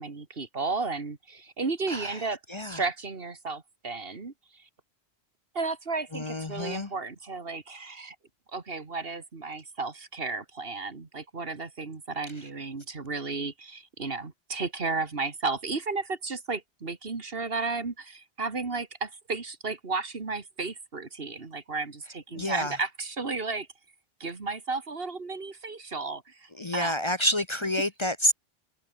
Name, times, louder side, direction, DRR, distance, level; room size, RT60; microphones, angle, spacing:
voice 1, 0.0-4.7 5.5-8.2 8.5-23.7 24.2-27.1, right 4 dB, 65° right, 2.3 m, -33 dB
voice 2, 1.9-2.8 6.1-6.9 22.3-22.7 26.6-28.3, left 1 dB, 30° left, 1.0 m, -29 dB
omnidirectional pair, 1.1 m